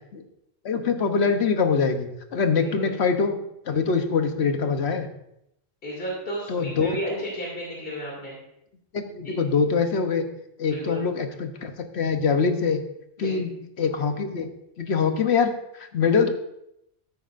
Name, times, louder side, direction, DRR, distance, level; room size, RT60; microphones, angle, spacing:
voice 1, 0.6-3.4 3.7-5.1 6.5-7.2 8.9-10.2 10.6-12.8 13.2-14.5 14.8-16.3, left 5 dB, 70° left, 7 dB, 1.2 m, -24 dB
voice 2, 2.6-2.9 5.8-8.4 9.2-9.3 10.7-11.0 13.2-13.3, equal, 55° left, -4 dB, 2.9 m, -33 dB
13.5 x 9.4 x 2.5 m, 0.81 s
omnidirectional pair, 1.1 m